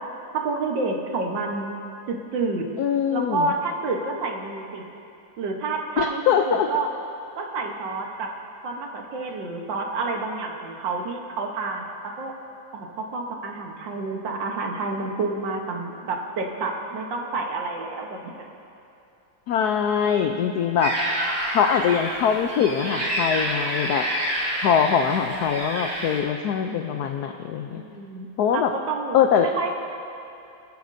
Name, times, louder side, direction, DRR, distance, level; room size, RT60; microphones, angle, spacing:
voice 1, 0.3-1.7 2.1-2.7 3.1-4.8 5.4-6.9 7.4-8.3 8.6-12.3 12.7-18.5 27.7-29.7, right 3 dB, 65° right, 1 dB, 1.7 m, -29 dB
voice 2, 2.8-3.5 6.0-6.7 19.5-21.0 21.5-24.1 24.6-27.8 28.4-28.7 29.1-29.5, left 8 dB, 85° left, 5 dB, 0.8 m, -22 dB
sound 1, 20.8-26.2, right 1 dB, 85° right, 4.0 m, -28 dB
26.5 x 9.4 x 2.6 m, 2.7 s
omnidirectional pair, 2.2 m